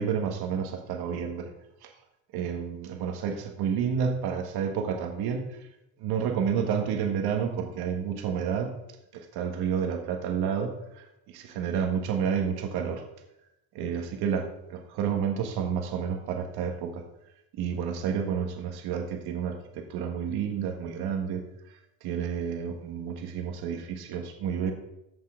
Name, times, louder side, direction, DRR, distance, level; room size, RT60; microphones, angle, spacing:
voice 1, 0.0-1.5 1.8-1.9 2.3-5.7 6.0-8.7 9.1-13.0 13.7-17.0 17.5-21.4 22.0-24.7, right 7 dB, 60° right, 4 dB, 1.5 m, -30 dB
14.5 x 5.6 x 3.7 m, 0.88 s
cardioid pair, 130°, 45 cm